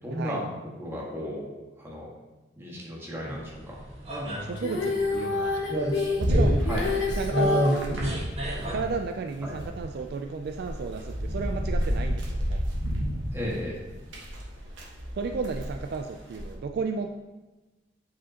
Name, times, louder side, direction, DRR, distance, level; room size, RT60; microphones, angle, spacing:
voice 1, 0.0-0.4 0.7-1.4 1.8-2.1 2.6-3.7 6.7-6.8 9.4-9.5 13.3-13.8, equal, 15° right, -5 dB, 1.6 m, -34 dB
sound 1, 3.2-8.7, equal, 35° right, 1.3 m, -30 dB
voice 2, 4.4-5.6 6.2-6.7 7.1-8.2 8.7-12.6 15.2-17.1, right 4 dB, 60° right, 6 dB, 0.3 m, -33 dB
Female singing, 4.6-7.8 9.8-9.9, left 3 dB, 85° left, 1.2 m, -28 dB
sound 2, 6.2-9.0 9.3-16.5, equal, 90° right, 1.2 m, -30 dB
8.2 x 5.0 x 2.9 m, 1.2 s
head